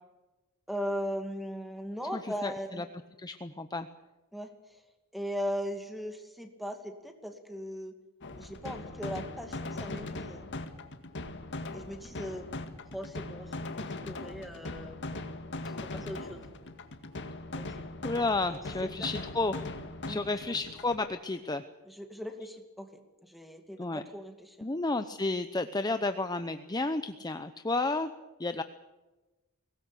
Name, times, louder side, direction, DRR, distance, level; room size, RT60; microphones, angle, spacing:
voice 1, 0.7-2.8 4.3-4.5 5.1-7.9 8.4-10.5 11.7-12.5 12.9-15.0 15.6-16.5 17.6-17.9 18.4-18.6 19.0-19.1 20.0-20.5 21.9-22.9 23.2-24.7, equal, ahead, 5 dB, 2.4 m, -39 dB
voice 2, 2.1-2.8 3.2-3.9 18.0-19.6 20.1-21.6 23.8-24.0 24.6-28.1 28.4-28.6, left 3 dB, 20° left, 9 dB, 0.8 m, -32 dB
sound 1, 8.2-21.0, left 2 dB, 55° left, 1.9 m, -40 dB
23.0 x 19.0 x 8.4 m, 1.1 s
head